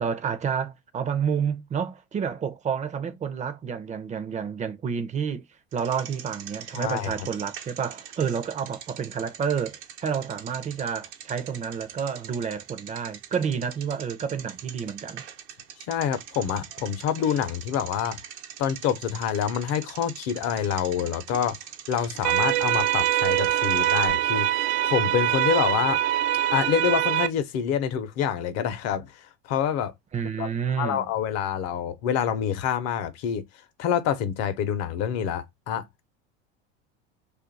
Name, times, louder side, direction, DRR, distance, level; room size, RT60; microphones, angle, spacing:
voice 1, 0.0-5.4 5.7-15.2 30.1-31.1, right 7 dB, 25° right, 0.5 m, -29 dB
Bicycle, 5.7-24.1, right 9 dB, 90° right, 0.9 m, -43 dB
voice 2, 6.7-7.1 15.9-18.2 18.6-21.6 21.9-24.5 24.8-26.0 26.5-29.1 29.5-29.9 30.4-30.5 30.8-33.4 33.8-35.9, left 9 dB, 50° left, 0.7 m, -27 dB
sound 1, 22.2-27.3, right 12 dB, 75° right, 0.5 m, -23 dB
2.6 x 2.5 x 3.8 m
supercardioid pair, 110°, 32 cm